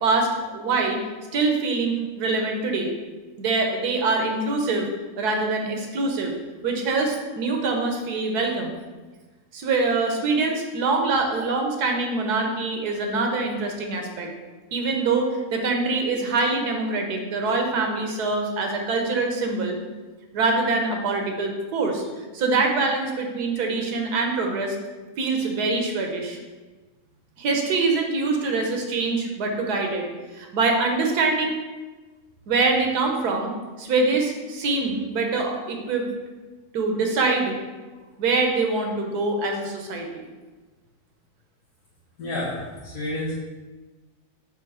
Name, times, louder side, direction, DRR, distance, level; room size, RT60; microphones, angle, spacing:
voice 1, 0.0-1.0 1.3-2.9 3.4-4.9 5.2-6.3 6.6-8.8 9.5-14.3 14.7-19.8 20.3-22.0 22.3-24.8 25.2-26.4 27.4-30.1 30.3-31.6 32.5-33.5 33.8-36.1 36.7-37.5 38.2-40.2, right 3 dB, 90° right, 2 dB, 1.4 m, -24 dB
voice 2, 42.2-43.3, left 1 dB, 75° left, -8 dB, 1.6 m, -30 dB
6.6 x 3.1 x 4.9 m, 1.3 s
omnidirectional pair, 1.6 m